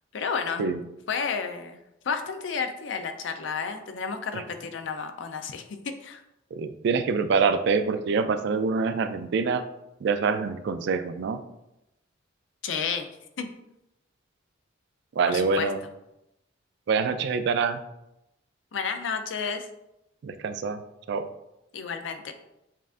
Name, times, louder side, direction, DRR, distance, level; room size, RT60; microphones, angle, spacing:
voice 1, 0.1-0.6 1.1-1.8 2.1-6.2 12.6-13.1 13.4-13.5 15.3-15.7 18.7-19.7 21.7-22.3, left 5 dB, 70° left, 7 dB, 0.5 m, -31 dB
voice 2, 6.5-9.6 10.0-11.4 15.1-15.8 16.9-17.8 20.2-20.8 21.1-21.2, right 5 dB, 60° right, 9 dB, 0.3 m, -25 dB
7.3 x 2.5 x 2.4 m, 0.88 s
head